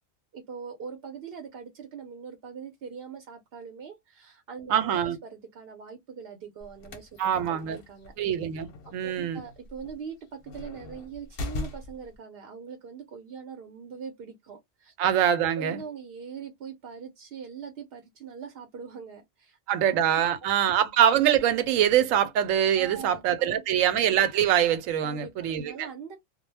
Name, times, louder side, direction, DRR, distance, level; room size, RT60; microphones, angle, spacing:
voice 1, 0.3-7.1 7.7-8.1 9.0-14.9 15.6-19.8 20.4-20.7 22.7-23.8 25.0-26.2, right 6 dB, 60° right, 0.7 m, -42 dB
voice 2, 4.7-5.2 7.2-7.8 8.2-9.4 15.0-15.8 19.7-25.9, right 10 dB, 85° right, 1.0 m, -24 dB
sound 1, 6.6-12.2, left 2 dB, 55° left, 0.7 m, -40 dB
2.2 x 2.0 x 3.2 m
omnidirectional pair, 1.3 m